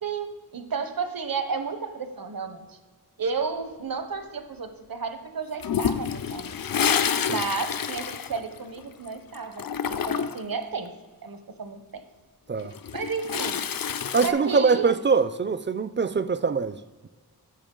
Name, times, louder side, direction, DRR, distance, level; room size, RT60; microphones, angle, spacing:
voice 1, 0.0-2.8 3.2-6.6 7.3-10.9 11.2-12.0 12.9-13.6 14.2-14.9, right 5 dB, 65° right, 8 dB, 0.9 m, -32 dB
Toilet flush, 5.6-9.1 9.3-10.5 12.6-14.3, left 8 dB, 60° left, 0.5 m, -28 dB
voice 2, 14.1-17.1, right 5 dB, 30° right, 14 dB, 0.4 m, -23 dB
10.5 x 6.7 x 3.8 m, 1.4 s
wide cardioid pair, 50°, 38 cm